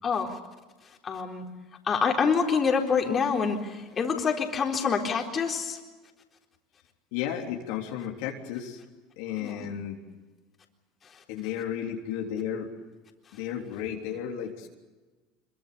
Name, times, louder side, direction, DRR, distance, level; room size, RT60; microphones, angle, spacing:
voice 1, 0.0-0.4 1.0-1.4 1.8-5.8 9.4-9.6, left 5 dB, 30° left, 1 dB, 4.0 m, -26 dB
voice 2, 7.1-8.8 9.2-10.0 11.3-12.7 13.3-14.7, left 9 dB, 75° left, 1 dB, 3.5 m, -33 dB
25.5 x 23.5 x 6.9 m, 1.2 s
supercardioid pair, 100°, 0 cm